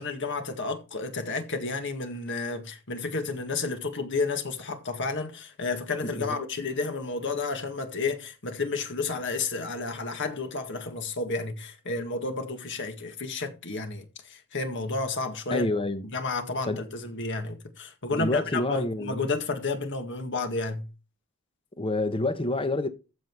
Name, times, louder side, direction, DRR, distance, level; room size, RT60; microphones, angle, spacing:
voice 1, 0.0-15.7 16.1-20.8, left 3 dB, 55° left, 1.9 m, -31 dB
voice 2, 6.0-6.4 15.5-16.0 16.7-16.8 18.1-19.2 21.8-22.9, left 2 dB, 25° left, 1.0 m, -28 dB
14.5 x 5.6 x 4.7 m
head